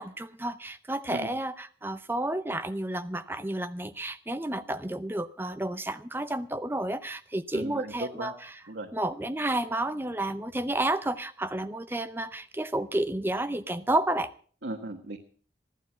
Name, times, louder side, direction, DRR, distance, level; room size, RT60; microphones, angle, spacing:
voice 1, 0.0-8.3 8.9-14.3, right 1 dB, 15° right, 12 dB, 0.6 m, -31 dB
voice 2, 7.5-8.3 8.7-8.9 14.6-15.2, right 2 dB, 85° right, 3 dB, 1.5 m, -36 dB
16.0 x 12.0 x 6.2 m, 0.44 s
head